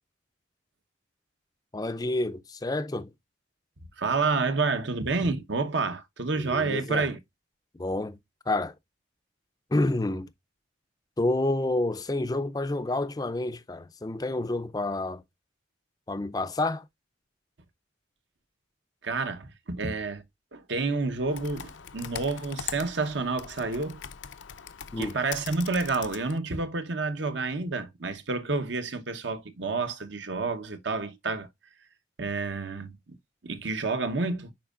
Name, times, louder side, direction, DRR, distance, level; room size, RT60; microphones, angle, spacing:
voice 1, 1.7-3.1 6.4-7.1 7.7-8.2 8.5-8.7 9.7-10.3 11.2-15.2 16.1-16.8 24.9-25.2, left 2 dB, 20° left, 0.4 m, -29 dB
voice 2, 4.0-7.2 19.0-20.2 20.5-24.0 25.0-31.5 32.2-33.2 33.4-34.5, right 3 dB, 70° right, 0.9 m, -29 dB
Computer keyboard, 21.3-26.4, left 8 dB, 75° left, 0.6 m, -41 dB
10.5 x 4.6 x 2.4 m
head